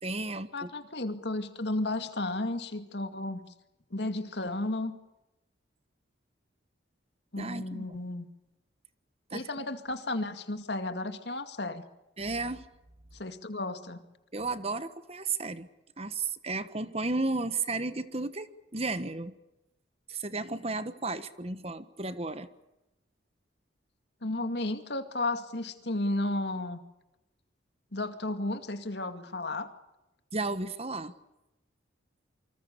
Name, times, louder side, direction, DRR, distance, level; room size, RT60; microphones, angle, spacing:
voice 1, 0.0-0.7 7.4-7.8 9.3-9.5 12.2-12.6 14.3-15.7 16.0-18.5 18.7-19.3 20.1-22.5 30.3-31.1, right 3 dB, 30° right, 12 dB, 1.3 m, -33 dB
voice 2, 0.5-3.4 3.9-5.0 7.3-8.3 9.3-11.8 13.1-14.0 24.2-26.8 27.9-29.7, left 2 dB, 60° left, 9 dB, 2.3 m, -33 dB
28.0 x 25.5 x 6.9 m, 0.95 s
head